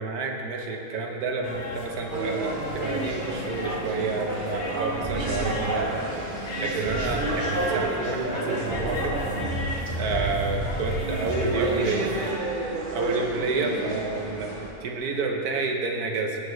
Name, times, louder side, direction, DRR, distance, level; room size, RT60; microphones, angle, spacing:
voice 1, 0.0-6.1 6.6-9.2 10.0-12.1 12.9-16.4, right 3 dB, 80° right, 1 dB, 1.4 m, -29 dB
sound 1, 1.4-12.3, left 1 dB, 50° left, 1.2 m, -36 dB
sound 2, 2.1-14.7, right 2 dB, 40° right, 1.0 m, -31 dB
sound 3, 5.0-5.5 6.9-7.4 8.7-11.4, right 1 dB, 15° right, 0.7 m, -31 dB
15.5 x 6.9 x 3.2 m, 2.9 s
omnidirectional pair, 1.6 m